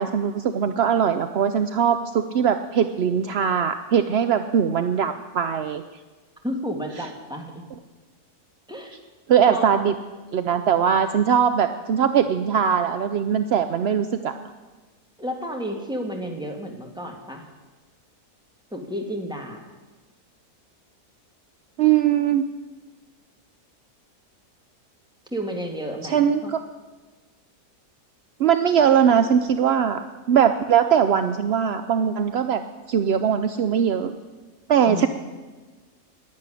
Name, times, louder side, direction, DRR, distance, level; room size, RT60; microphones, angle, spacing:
voice 1, 0.0-5.8 9.3-9.9 10.3-14.3 21.8-22.4 26.1-26.6 28.4-32.6 32.9-34.1 34.7-35.1, right 8 dB, 70° right, 9 dB, 0.6 m, -21 dB
voice 2, 6.4-7.6 8.7-8.9 9.5-9.7 15.2-17.5 18.7-19.6 25.3-26.5 34.8-35.1, equal, 5° right, 1 dB, 1.8 m, -31 dB
11.0 x 9.7 x 9.9 m, 1.3 s
omnidirectional pair, 1.7 m